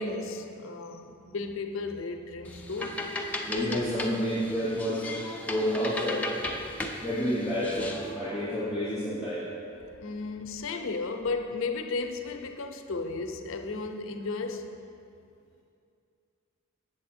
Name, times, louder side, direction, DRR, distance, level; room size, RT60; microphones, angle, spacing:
voice 1, 0.0-3.0 10.0-14.7, left 3 dB, 65° left, 5 dB, 0.5 m, -34 dB
sound 1, 2.5-8.1, left 2 dB, 5° left, 0.5 m, -36 dB
voice 2, 3.4-6.3 7.0-9.4, equal, 15° right, -12 dB, 2.0 m, -29 dB
7.7 x 6.8 x 4.2 m, 2.5 s
head